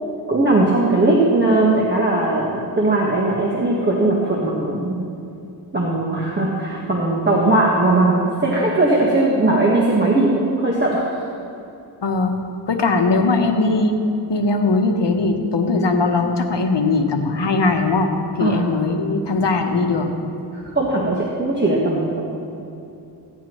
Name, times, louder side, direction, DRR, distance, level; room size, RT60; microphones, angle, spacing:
voice 1, 0.3-5.0 5.7-11.2 18.4-18.6 20.5-22.3, right 2 dB, 25° right, -4 dB, 1.4 m, -19 dB
voice 2, 12.0-12.4 12.7-14.0 14.3-18.1 18.4-20.1, left 3 dB, 75° left, 4 dB, 1.1 m, -19 dB
16.0 x 10.5 x 3.1 m, 2.8 s
wide cardioid pair, 85°, 42 cm